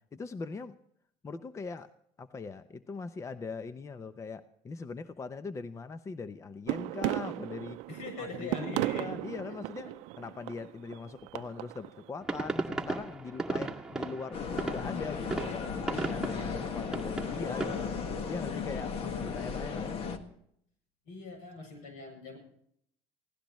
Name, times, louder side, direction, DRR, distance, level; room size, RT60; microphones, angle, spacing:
voice 1, 0.1-0.8 1.2-1.9 2.2-7.8 8.2-9.9 10.2-17.9 18.3-20.1, left 4 dB, 25° left, 12 dB, 0.7 m, -41 dB
sound 1, 6.7-12.0, right 19 dB, 75° right, 0.5 m, -36 dB
voice 2, 7.9-9.5 21.0-22.4, left 3 dB, 80° left, 3 dB, 7.8 m, -43 dB
sound 2, 12.2-17.9, right 3 dB, 5° right, 1.9 m, -36 dB
sound 3, 14.3-20.2, left 5 dB, 50° left, 1.7 m, -35 dB
25.0 x 16.5 x 3.1 m, 0.69 s
supercardioid pair, 105°, 12 cm